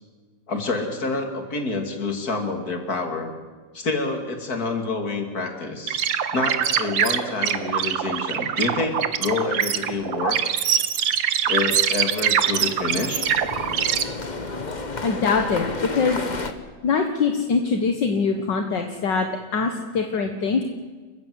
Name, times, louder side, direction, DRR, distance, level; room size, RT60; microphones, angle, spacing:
voice 1, 0.5-3.3 3.7-6.0 6.3-10.4 11.5-13.3, left 3 dB, 50° left, 5 dB, 3.2 m, -27 dB
sound 1, 5.9-14.0, right 9 dB, 85° right, 1.9 m, -23 dB
sound 2, 8.6-9.0 12.2-16.5, left 3 dB, 25° left, 1.4 m, -32 dB
voice 2, 15.0-16.3 16.8-20.6, left 5 dB, 70° left, 5 dB, 2.1 m, -23 dB
30.0 x 15.0 x 8.1 m, 1.4 s
omnidirectional pair, 2.0 m